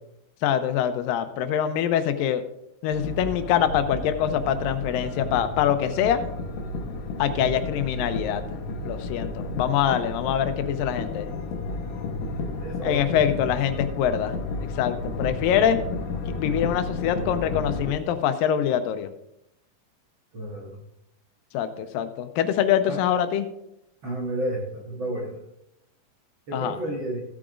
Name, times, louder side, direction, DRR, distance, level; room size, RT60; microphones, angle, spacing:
voice 1, 0.4-2.4 2.8-6.2 7.2-8.4 8.8-11.4 12.8-15.8 16.3-19.1 21.5-23.5 26.5-26.8, left 9 dB, 90° left, 9 dB, 2.4 m, -24 dB
sound 1, 2.9-17.9, left 2 dB, 75° left, 2.5 m, -32 dB
voice 2, 7.4-7.7 12.6-13.4 20.3-20.8 22.9-23.0 24.0-25.4 26.5-27.2, right 1 dB, 55° right, -2 dB, 1.4 m, -32 dB
15.5 x 8.6 x 2.5 m, 0.83 s
omnidirectional pair, 3.9 m